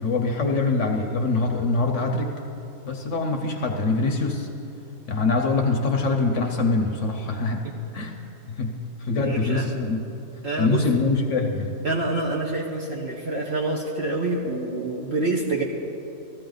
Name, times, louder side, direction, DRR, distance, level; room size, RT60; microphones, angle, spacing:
voice 1, 0.0-2.3 2.8-4.5 5.1-8.2 8.6-10.0 10.6-11.8, left 3 dB, 55° left, 3 dB, 1.0 m, -24 dB
voice 2, 9.2-9.7 10.4-10.9 11.8-15.6, right 2 dB, 50° right, -2 dB, 1.1 m, -27 dB
15.0 x 13.5 x 3.9 m, 2.8 s
omnidirectional pair, 1.7 m